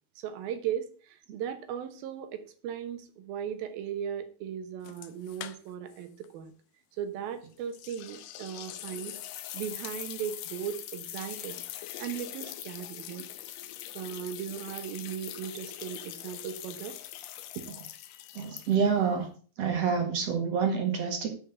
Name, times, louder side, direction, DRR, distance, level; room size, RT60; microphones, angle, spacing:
voice 1, 0.2-6.5 7.0-9.1 9.5-11.6 12.0-13.2 13.9-17.0 17.6-17.7, right 9 dB, 70° right, 8 dB, 2.8 m, -37 dB
sound 1, 4.8-6.0 6.2-6.3 7.7-19.0, left 13 dB, 75° left, 2.0 m, -42 dB
voice 2, 18.4-19.3 19.6-21.3, right 6 dB, 50° right, 4 dB, 2.2 m, -27 dB
9.6 x 5.5 x 6.8 m, 0.41 s
omnidirectional pair, 4.7 m